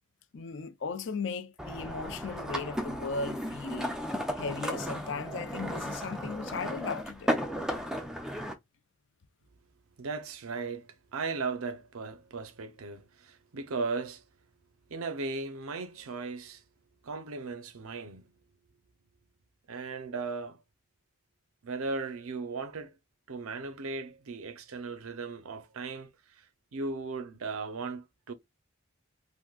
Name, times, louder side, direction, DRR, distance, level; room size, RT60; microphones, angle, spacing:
voice 1, 0.3-4.0 4.4-7.4, left 4 dB, 60° left, 0.5 m, -37 dB
sound 1, 1.6-8.5, equal, 5° right, 0.4 m, -34 dB
voice 2, 10.0-14.2 14.9-16.6 17.0-18.2 19.7-20.6 21.6-22.9 23.3-26.1 26.4-26.5 26.7-28.3, right 4 dB, 90° right, 0.6 m, -37 dB
3.6 x 2.6 x 2.3 m
head